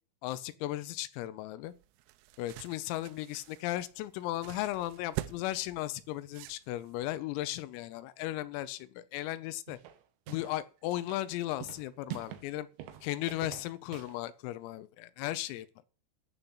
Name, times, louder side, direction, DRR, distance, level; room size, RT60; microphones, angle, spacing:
voice 1, 0.2-1.7 2.4-9.8 10.3-12.7 13.0-15.7, left 15 dB, 85° left, 3.4 m, -36 dB
sound 1, 1.7-7.1, right 16 dB, 90° right, 3.4 m, -45 dB
sound 2, 9.7-10.6 10.9-12.5 12.8-14.2, right 12 dB, 75° right, 2.8 m, -45 dB
13.0 x 5.7 x 7.9 m
omnidirectional pair, 5.9 m